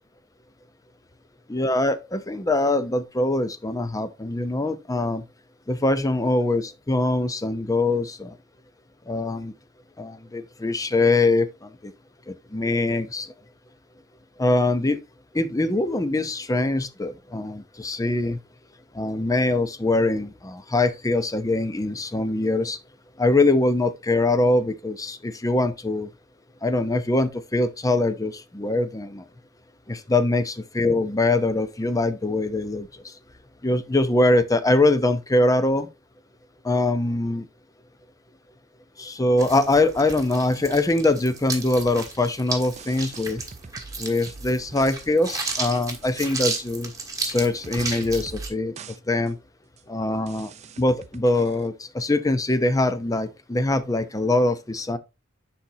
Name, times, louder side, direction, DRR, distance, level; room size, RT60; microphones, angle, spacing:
voice 1, 1.5-5.2 5.7-8.3 9.1-9.5 10.0-11.9 12.3-13.3 14.4-15.0 15.3-18.4 18.9-22.8 23.2-26.1 26.6-29.2 29.9-30.4 30.8-32.9 33.6-35.9 36.6-37.5 39.0-43.4 44.0-46.9 47.2-48.7 49.1-49.4 49.9-50.5 50.8-55.0, left 2 dB, 15° left, 0.6 m, -23 dB
sound 1, 39.4-48.5, right 3 dB, 15° right, 1.6 m, -34 dB
sound 2, 42.7-45.0 45.3-45.4 45.8-46.2 46.5-46.6 47.3-47.4 47.6-48.5 48.8-49.0 49.3-49.4 49.8-49.9 50.3-51.7, right 4 dB, 35° right, 0.5 m, -42 dB
10.0 x 4.2 x 2.7 m
head